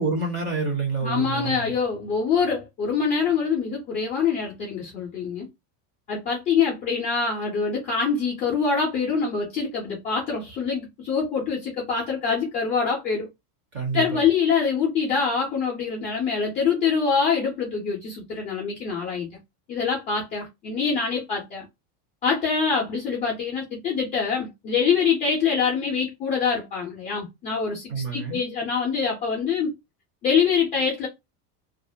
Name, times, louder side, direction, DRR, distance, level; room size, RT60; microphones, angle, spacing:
voice 1, 0.0-1.7 13.7-14.2 27.9-28.4, right 4 dB, 25° right, 0.6 m, -28 dB
voice 2, 1.0-5.5 6.1-13.3 13.9-19.3 19.7-21.7 22.2-29.7 30.2-31.1, left 5 dB, 20° left, 0.3 m, -25 dB
2.3 x 2.0 x 2.6 m
cardioid pair, 170°, 46 cm